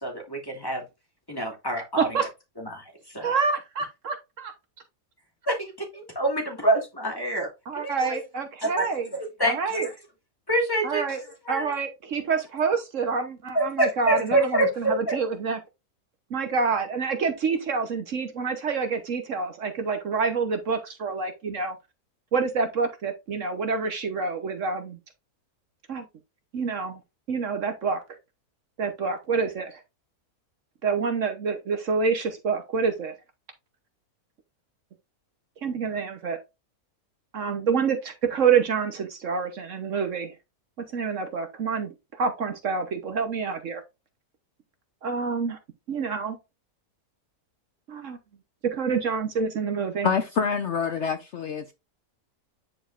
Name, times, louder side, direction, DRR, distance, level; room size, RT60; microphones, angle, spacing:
voice 1, 0.0-0.8 1.3-2.1 2.7-2.8 3.1-3.3 5.5-7.5 7.8-8.2 8.6-8.9 9.4-9.9 10.5-11.1 11.5-11.7 13.5-15.1, right 1 dB, 15° left, 2.5 m, -26 dB
voice 2, 3.2-4.5 7.7-9.1 9.4-9.9 10.8-11.2 11.5-15.6 16.3-21.8 22.3-25.0 25.9-26.0 26.5-27.0 27.3-28.2 28.8-29.8 30.8-33.1 35.6-36.4 37.3-40.3 40.9-43.8 45.0-45.6 45.9-46.4 47.9-48.2 48.6-50.1, right 5 dB, 60° right, 1.3 m, -27 dB
voice 3, 50.0-51.7, left 6 dB, 60° left, 0.9 m, -26 dB
10.0 x 4.7 x 2.5 m
omnidirectional pair, 1.6 m